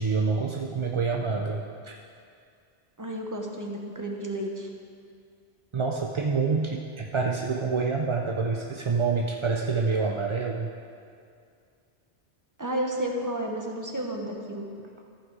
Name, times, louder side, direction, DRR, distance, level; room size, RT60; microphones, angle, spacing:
voice 1, 0.0-2.0 5.7-10.7, right 4 dB, 45° right, 1 dB, 0.4 m, -27 dB
voice 2, 3.0-4.7 12.6-14.7, right 1 dB, 20° right, 0 dB, 1.0 m, -32 dB
14.0 x 5.7 x 4.7 m, 2.3 s
omnidirectional pair, 1.1 m